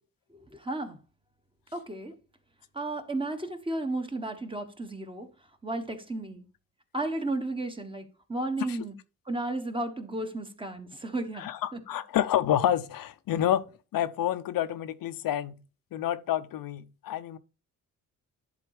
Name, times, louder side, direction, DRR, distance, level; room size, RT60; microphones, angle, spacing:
voice 1, 0.5-1.0 1.7-2.1 2.7-5.3 5.6-6.4 6.9-8.9 9.3-11.8, right 2 dB, 15° right, 1.1 m, -33 dB
voice 2, 11.3-15.6 15.9-17.4, left 11 dB, 90° left, 0.7 m, -29 dB
10.5 x 4.0 x 4.7 m
wide cardioid pair, 135°, 33 cm